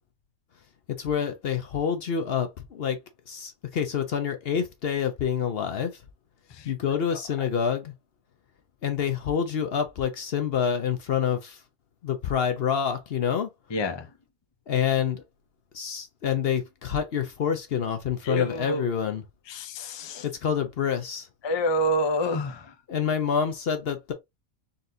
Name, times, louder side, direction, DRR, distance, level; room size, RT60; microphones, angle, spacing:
voice 1, 1.0-3.0 3.3-5.9 6.7-7.9 8.8-11.6 12.0-13.5 14.7-15.2 15.7-19.2 20.2-21.3 22.9-24.1, left 7 dB, 55° left, 0.7 m, -27 dB
voice 2, 13.7-14.1 18.2-18.8 19.5-20.2 21.4-22.7, equal, 35° left, 0.4 m, -28 dB
4.1 x 3.9 x 2.6 m
omnidirectional pair, 1.4 m